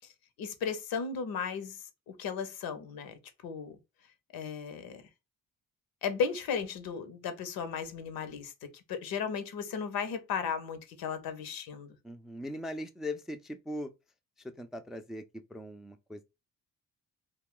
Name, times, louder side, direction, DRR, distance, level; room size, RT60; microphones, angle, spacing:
voice 1, 0.4-3.8 4.3-5.0 6.0-12.0, left 6 dB, 75° left, 0.8 m, -35 dB
voice 2, 12.0-13.9 14.4-15.2 15.5-16.2, left 1 dB, ahead, 0.3 m, -40 dB
2.3 x 2.3 x 3.6 m
supercardioid pair, 60°, 36 cm